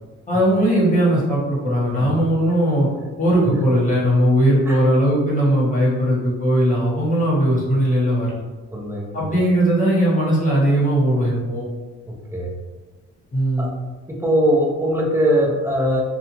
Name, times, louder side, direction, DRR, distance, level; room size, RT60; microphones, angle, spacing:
voice 1, 0.3-2.9 3.2-8.3 9.1-11.6 13.3-13.7, right 1 dB, 25° left, -6 dB, 1.2 m, -18 dB
voice 2, 8.7-9.4 12.3-12.5 13.6-13.7 14.1-16.0, equal, 10° right, -3 dB, 0.6 m, -21 dB
2.5 x 2.3 x 2.9 m, 1.2 s
cardioid pair, 90°, 30 cm